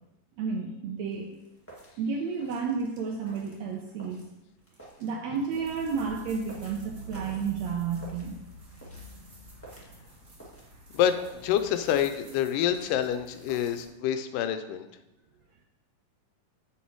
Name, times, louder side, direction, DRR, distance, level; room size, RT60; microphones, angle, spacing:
voice 1, 0.4-1.4 2.0-4.2 5.0-8.4, right 5 dB, 75° right, 1 dB, 1.6 m, -31 dB
sound 1, 1.1-13.9, right 1 dB, 15° left, 0.4 m, -53 dB
sound 2, 5.5-13.8, right 3 dB, 45° right, 1.1 m, -47 dB
voice 2, 10.9-14.9, left 10 dB, 85° left, 9 dB, 2.1 m, -27 dB
7.2 x 6.0 x 4.6 m, 0.93 s
omnidirectional pair, 3.8 m